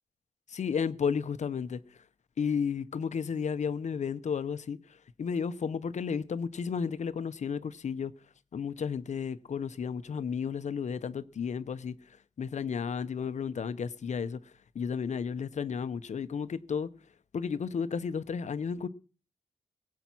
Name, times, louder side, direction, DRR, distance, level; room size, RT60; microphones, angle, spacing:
voice 1, 0.5-1.8 2.4-4.8 5.2-8.1 8.5-11.9 12.4-14.4 14.7-16.9 17.3-18.9, left 6 dB, 60° left, 0.9 m, -32 dB
21.5 x 8.2 x 6.1 m
wide cardioid pair, 160°, 14 cm